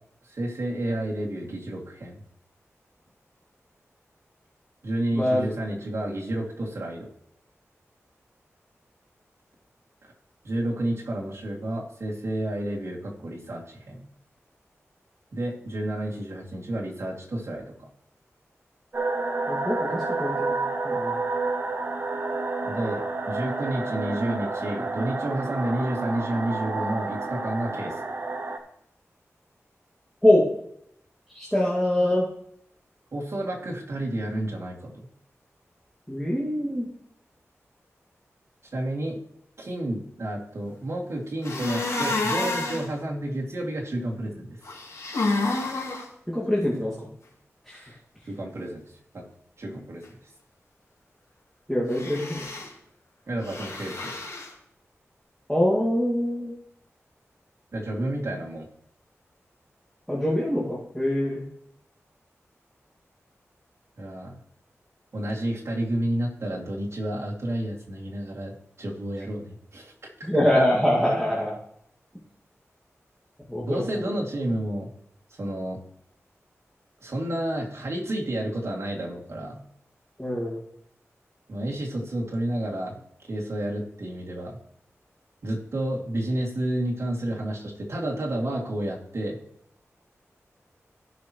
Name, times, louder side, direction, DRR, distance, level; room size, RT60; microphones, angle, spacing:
voice 1, 0.2-2.2 4.8-7.1 10.0-10.1 10.4-14.0 15.3-17.9 22.6-28.0 33.1-35.1 38.7-39.2 39.6-44.6 48.3-48.8 49.1-49.2 49.6-50.3 53.3-54.1 57.7-58.7 64.0-64.4 65.1-69.9 70.2-70.3 73.6-74.9 75.3-75.8 77.0-79.6 81.5-83.0 83.3-84.6 85.4-89.4, right 1 dB, 60° right, -2 dB, 2.5 m, -30 dB
voice 2, 5.1-5.5 19.5-21.1 30.2-30.4 31.3-32.3 36.1-36.9 46.3-47.1 47.7-47.9 51.7-52.5 55.5-56.5 60.1-61.4 70.2-71.6 73.5-74.1 80.2-80.6, left 1 dB, ahead, -6 dB, 2.1 m, -24 dB
sound 1, 18.9-28.6, right 3 dB, 40° right, 1.1 m, -29 dB
sound 2, 41.4-42.9 44.6-46.0 51.9-52.7 53.4-54.5, left 2 dB, 85° left, 2.7 m, -29 dB
16.0 x 6.0 x 3.1 m, 0.71 s
wide cardioid pair, 115°, 5 cm